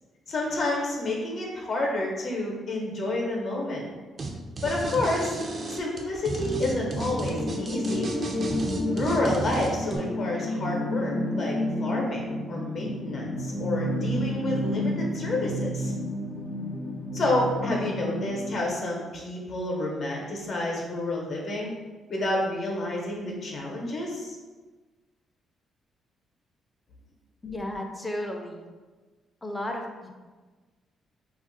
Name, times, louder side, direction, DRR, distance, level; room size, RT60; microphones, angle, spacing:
voice 1, 0.3-3.9 4.6-5.4 5.7-8.1 8.9-15.9 17.1-21.7 22.1-24.4, left 1 dB, 55° left, -1 dB, 0.8 m, -29 dB
sound 1, 4.2-4.3 4.6-10.0, right 2 dB, 45° right, 0.4 m, -33 dB
sound 2, 6.6-18.6, left 1 dB, 90° left, 0.7 m, -30 dB
voice 2, 27.4-28.7 29.4-30.1, left 1 dB, 15° left, 2 dB, 0.4 m, -34 dB
2.4 x 2.1 x 3.9 m, 1.3 s
cardioid pair, 90°, 0 cm